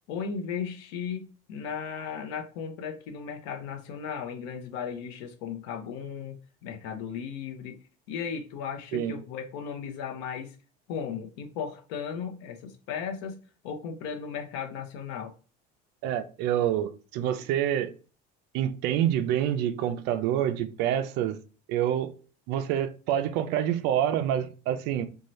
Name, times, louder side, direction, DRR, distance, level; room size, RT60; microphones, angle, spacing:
voice 1, 0.1-6.4 6.6-7.8 8.1-10.6 10.9-13.4 13.6-15.3, left 7 dB, 80° left, 0.7 m, -36 dB
voice 2, 16.0-17.9 18.5-21.4 21.7-22.1 22.5-25.1, right 10 dB, 55° right, 0.4 m, -27 dB
2.7 x 2.3 x 3.0 m
cardioid pair, 165°, 21 cm